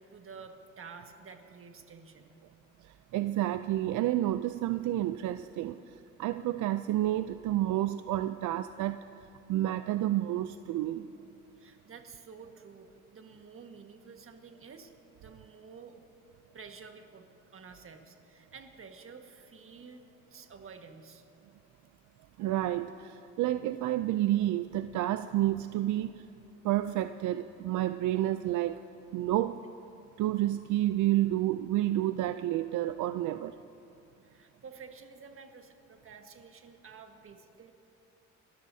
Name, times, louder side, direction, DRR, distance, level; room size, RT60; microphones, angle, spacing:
voice 1, 0.0-2.4 11.6-14.9 15.2-16.0 16.5-17.3 17.5-20.0 20.3-21.2 34.2-37.7, right 5 dB, 45° right, 5 dB, 1.6 m, -50 dB
voice 2, 3.1-5.8 6.2-9.0 9.5-11.1 22.4-26.2 26.6-28.8 29.1-29.6 30.2-33.5, right 14 dB, 75° right, 11 dB, 0.5 m, -30 dB
29.5 x 13.5 x 2.7 m, 2.8 s
cardioid pair, 90°, 30 cm